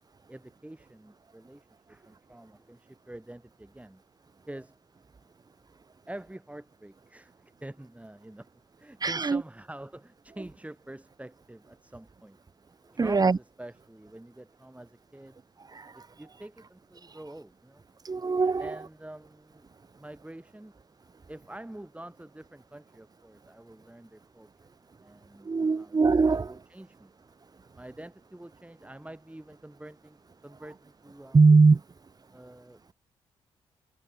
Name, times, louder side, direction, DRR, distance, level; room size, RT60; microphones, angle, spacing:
voice 1, 0.3-4.0 4.5-4.8 6.1-8.5 8.8-12.4 12.8-15.4 15.9-17.8 18.6-19.6 20.0-20.7 21.3-24.5 25.0-26.0 26.3-27.1 27.8-31.4 32.3-32.9, right 1 dB, 10° right, 7.6 m, -46 dB
voice 2, 9.0-9.4 13.0-13.4 18.1-18.6 25.5-26.5 31.3-31.8, right 4 dB, 30° right, 1.2 m, -21 dB
hypercardioid pair, 45°, 12 cm